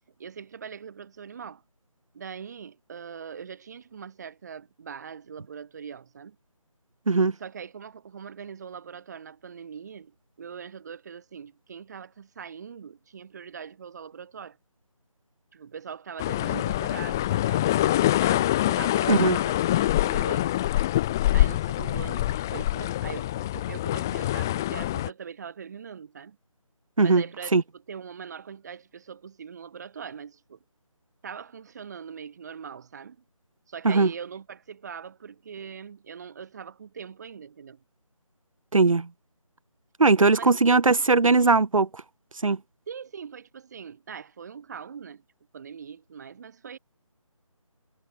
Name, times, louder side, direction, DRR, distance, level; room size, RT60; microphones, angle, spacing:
voice 1, 0.2-1.6 2.1-6.4 7.4-14.6 15.5-20.5 21.3-26.4 27.0-27.6 27.9-30.6 31.2-33.2 33.7-37.8 40.3-41.1 42.9-45.2 45.5-46.8, right 7 dB, 30° right, 7.3 m, -41 dB
sound 1, 16.2-25.1, left 14 dB, 5° left, 0.6 m, -25 dB
voice 2, 38.7-39.1 40.0-41.9 42.4-42.6, right 3 dB, 75° right, 1.2 m, -19 dB
figure-of-eight pair, 165°, 17 cm